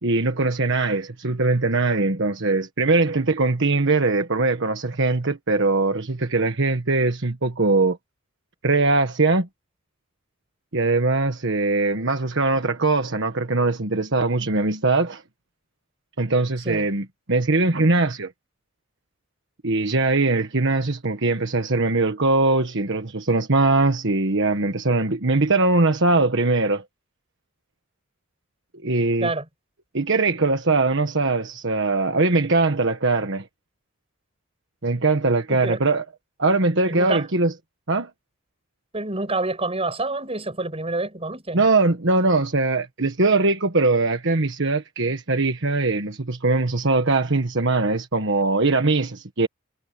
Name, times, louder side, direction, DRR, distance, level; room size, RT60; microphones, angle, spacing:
voice 1, 0.0-8.0 8.6-9.5 10.7-15.2 16.2-18.3 19.6-26.8 28.8-29.3 29.9-33.5 34.8-36.0 36.4-37.5 37.9-38.1 41.5-49.5, right 3 dB, 60° right, 1.4 m, -21 dB
voice 2, 35.5-35.8 36.9-37.3 38.9-41.6, right 2 dB, 30° right, 6.2 m, -27 dB
head